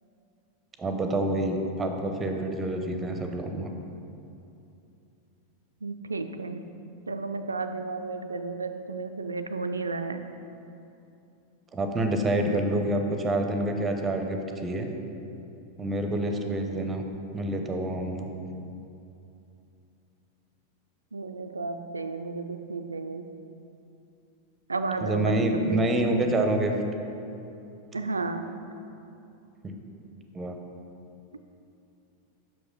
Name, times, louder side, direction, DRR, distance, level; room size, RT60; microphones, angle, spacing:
voice 1, 0.8-3.7 11.7-14.9 15.8-17.0 17.3-18.3 25.0-26.7 29.6-29.7 30.3-30.5, right 1 dB, 15° right, 4 dB, 0.6 m, -27 dB
voice 2, 5.8-6.6 7.1-10.2 21.1-23.3 24.7-26.0 27.9-28.4, right 3 dB, 75° right, 8 dB, 0.3 m, -33 dB
5.9 x 4.9 x 5.2 m, 2.8 s
figure-of-eight pair, 90°, 0 cm